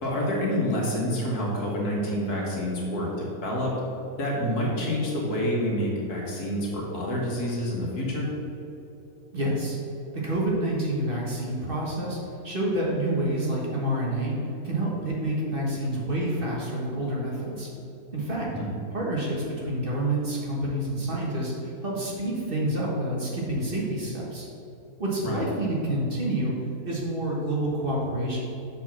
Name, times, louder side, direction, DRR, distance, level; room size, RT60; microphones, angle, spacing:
voice 1, 0.0-3.7 4.2-8.3 18.5-18.7 25.2-25.4, equal, 80° left, -3 dB, 2.1 m, -28 dB
voice 2, 9.3-9.8 10.1-12.2 12.4-14.3 14.6-17.7 18.1-18.5 18.9-24.5 25.0-26.5 26.8-28.4, right 1 dB, 40° right, -4 dB, 1.5 m, -28 dB
6.9 x 4.5 x 6.0 m, 2.9 s
omnidirectional pair, 1.6 m